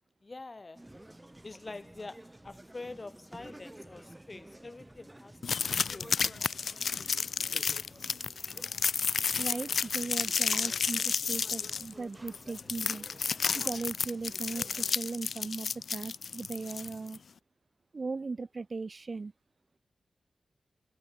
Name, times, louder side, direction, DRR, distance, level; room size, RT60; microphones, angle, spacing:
voice 1, 0.2-0.8 1.4-5.4 5.8-6.2, left 3 dB, 40° left, 1.0 m, -45 dB
sound 1, 0.7-15.0, right 1 dB, 20° right, 3.0 m, -52 dB
sound 2, 5.4-17.2, left 6 dB, 75° left, 0.4 m, -31 dB
voice 2, 9.4-13.1 13.5-17.2 17.9-19.3, right 4 dB, 50° right, 0.9 m, -38 dB
cardioid pair, 55°, 0 cm